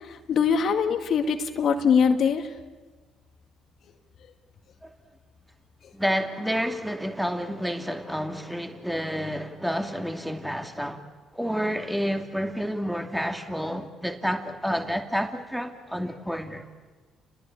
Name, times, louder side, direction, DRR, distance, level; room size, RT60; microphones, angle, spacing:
voice 1, 0.1-2.5, left 6 dB, 60° left, 2.1 m, -22 dB
voice 2, 5.9-11.1 11.3-16.7, equal, ahead, 2.5 m, -29 dB
30.0 x 20.0 x 8.4 m
hypercardioid pair, 60°, 0 cm